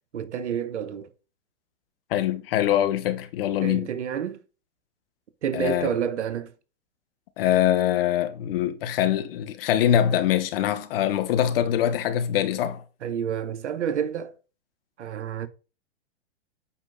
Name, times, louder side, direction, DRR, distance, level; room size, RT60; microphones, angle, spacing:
voice 1, 0.1-1.1 3.6-4.4 5.4-6.5 13.0-14.3 15.0-15.5, right 8 dB, 75° right, 1.2 m, -29 dB
voice 2, 2.1-3.9 5.5-5.9 7.4-12.8, left 11 dB, 50° left, 1.3 m, -23 dB
8.5 x 5.1 x 4.0 m
hypercardioid pair, 120°, 35 cm